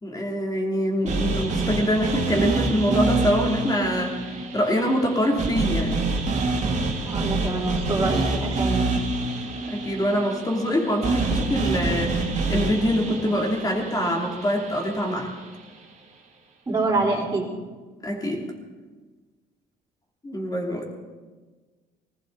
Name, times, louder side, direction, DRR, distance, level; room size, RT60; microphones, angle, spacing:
voice 1, 0.0-6.0 9.7-15.3 18.0-18.4 20.2-20.9, equal, 20° left, 1 dB, 3.1 m, -24 dB
sound 1, 1.1-15.2, right 3 dB, 45° right, 2.8 m, -27 dB
voice 2, 7.1-8.9 16.7-17.5, right 2 dB, 20° right, -5 dB, 4.2 m, -25 dB
19.5 x 16.0 x 4.1 m, 1.4 s
cardioid pair, 110°, 17 cm